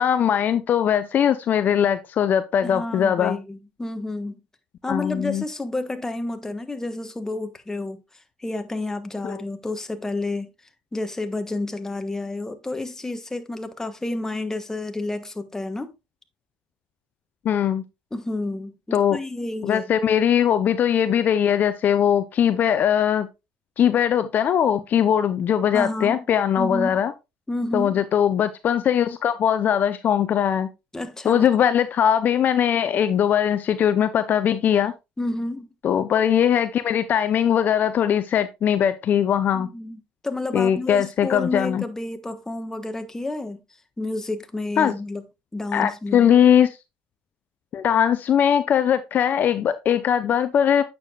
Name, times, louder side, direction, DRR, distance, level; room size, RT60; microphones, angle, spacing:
voice 1, 0.0-3.4 4.9-5.4 9.2-9.4 17.4-17.8 18.9-19.2 19.6-23.3 23.8-27.1 27.7-30.7 31.3-34.9 35.8-39.7 40.5-41.8 44.8-44.9 45.7-46.7 47.7-50.8, left 9 dB, 50° left, 0.6 m, -20 dB
voice 2, 2.6-4.4 4.8-8.0 8.4-10.5 10.9-15.9 18.1-19.8 25.7-26.2 26.6-27.0 27.5-28.0 30.9-31.5 35.2-35.7 39.5-43.6 44.0-45.2 45.5-46.3, left 2 dB, 10° left, 1.3 m, -30 dB
8.9 x 6.9 x 2.3 m
supercardioid pair, 80°, 4 cm